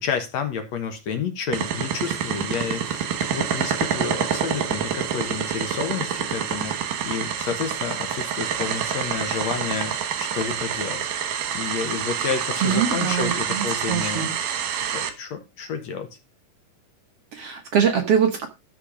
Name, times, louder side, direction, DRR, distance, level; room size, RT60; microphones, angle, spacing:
voice 1, 0.0-14.3 14.7-16.1, left 6 dB, 60° left, 7 dB, 2.3 m, -30 dB
sound 1, 1.5-15.1, right 8 dB, 85° right, 3.1 m, -27 dB
voice 2, 12.6-14.4 17.3-18.5, right 8 dB, 60° right, 4 dB, 1.7 m, -23 dB
13.5 x 4.5 x 5.1 m, 0.26 s
omnidirectional pair, 3.8 m